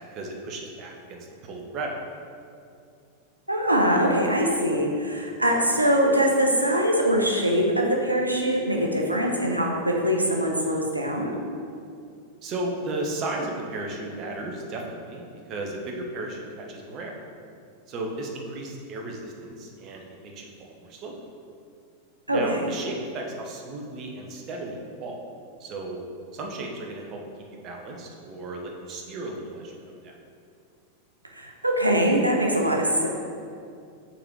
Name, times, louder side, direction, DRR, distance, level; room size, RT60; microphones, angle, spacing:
voice 1, 0.1-2.0 12.4-17.1 17.9-21.2 22.3-25.2 25.6-26.0 26.3-27.2 27.6-30.1, right 2 dB, 35° right, 1 dB, 1.0 m, -35 dB
voice 2, 3.5-11.3 22.3-22.6 31.4-33.1, equal, 85° right, 0 dB, 0.8 m, -23 dB
5.9 x 4.1 x 4.8 m, 2.4 s
figure-of-eight pair, 90°, 0 cm